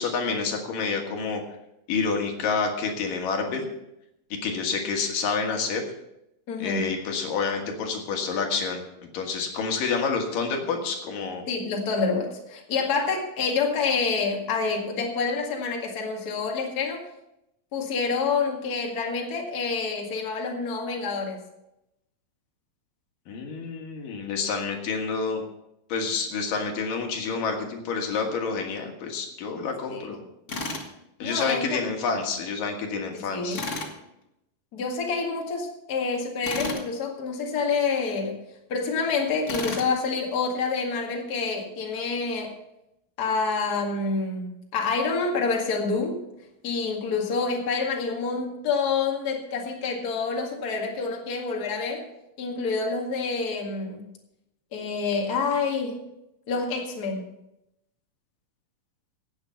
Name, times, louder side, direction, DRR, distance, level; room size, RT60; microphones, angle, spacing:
voice 1, 0.0-1.4 1.9-3.7 4.4-5.8 6.6-8.8 9.1-11.4 23.3-25.4 25.9-30.2 31.2-33.6, left 5 dB, 70° left, 3 dB, 3.2 m, -28 dB
voice 2, 6.5-6.9 11.5-17.1 17.7-21.4 29.9-30.2 31.2-31.8 33.1-33.6 34.7-38.4 38.7-42.5 43.2-46.3 46.6-52.0 52.4-54.0 54.7-56.0 56.5-57.3, left 4 dB, 35° left, 0 dB, 2.0 m, -27 dB
Tools, 30.5-30.9 33.5-33.9 36.4-36.9 39.5-39.9, left 2 dB, 50° left, 0.8 m, -32 dB
17.0 x 7.5 x 5.7 m, 0.85 s
omnidirectional pair, 4.1 m